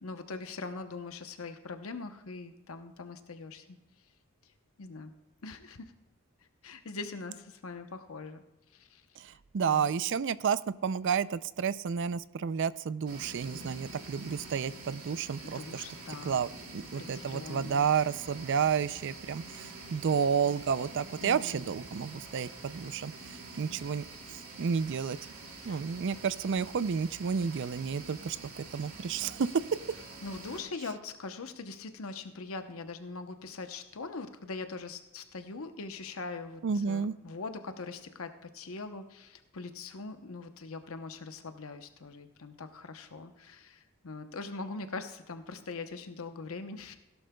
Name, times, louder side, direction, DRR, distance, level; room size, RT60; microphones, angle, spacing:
voice 1, 0.0-3.8 4.8-5.1 5.4-5.9 6.6-8.4 8.7-9.0 9.6-9.9 15.4-16.4 16.9-17.9 21.2-21.7 25.6-25.9 30.2-47.0, left 3 dB, 75° left, 8 dB, 0.8 m, -42 dB
voice 2, 9.2-15.8 16.2-23.1 23.6-25.2 25.6-29.5 36.6-37.1, right 6 dB, 55° right, 16 dB, 0.4 m, -31 dB
sound 1, 13.1-30.6, right 3 dB, 90° right, 3.5 m, -47 dB
16.5 x 11.5 x 2.3 m, 1.0 s
head